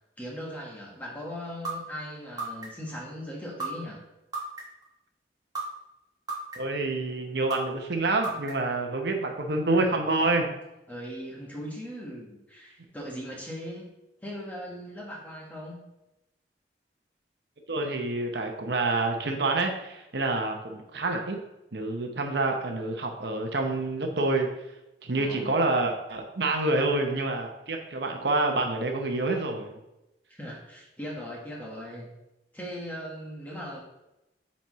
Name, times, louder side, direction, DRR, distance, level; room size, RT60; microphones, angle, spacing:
voice 1, 0.2-4.0 10.9-13.9 14.2-15.8 25.1-25.5 30.3-32.1 32.5-33.8, equal, 10° left, -3 dB, 1.4 m, -39 dB
sound 1, 1.6-1.7 2.4-2.9 3.6-3.7 4.3-4.8 5.5-5.6 6.3-6.8 7.5-7.6 8.2-8.7, right 4 dB, 20° right, 1.2 m, -32 dB
voice 2, 6.5-10.5 17.7-21.4 21.7-24.5 25.0-29.8, right 2 dB, 70° right, 3 dB, 0.8 m, -27 dB
9.0 x 4.2 x 3.1 m, 0.93 s
head